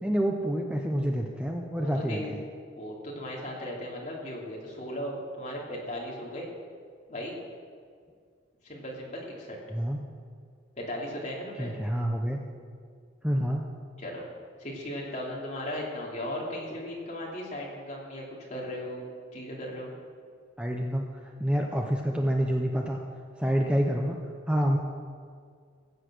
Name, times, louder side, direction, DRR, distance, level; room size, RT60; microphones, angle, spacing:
voice 1, 0.0-2.4 9.7-10.0 11.6-12.4 13.2-13.6 20.6-23.0 23.4-24.2 24.5-24.8, equal, 5° right, 1 dB, 0.6 m, -27 dB
voice 2, 1.7-2.3 2.8-6.5 7.1-7.3 8.6-9.6 10.8-11.7 14.0-14.2 14.6-18.2 18.5-19.0 19.3-19.9, left 1 dB, 35° left, -3 dB, 2.7 m, -37 dB
15.0 x 8.2 x 6.3 m, 2.1 s
head